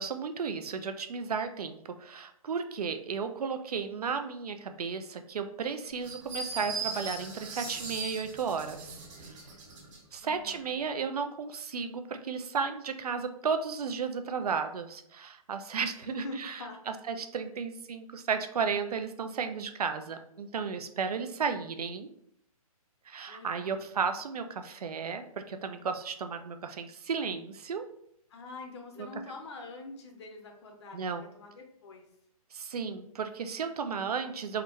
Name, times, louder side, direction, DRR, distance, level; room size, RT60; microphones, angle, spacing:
voice 1, 0.0-9.4 10.1-16.6 16.9-22.1 23.1-27.8 29.0-29.1 30.9-31.2 32.5-34.6, right 5 dB, 85° right, 8 dB, 0.4 m, -34 dB
sound 1, 6.0-10.0, right 4 dB, 55° right, 1.4 m, -39 dB
voice 2, 10.2-10.7 16.0-16.8 23.3-23.8 28.3-32.1, left 2 dB, 45° left, 3 dB, 0.7 m, -44 dB
3.6 x 2.2 x 2.9 m, 0.71 s
hypercardioid pair, 150°, 19 cm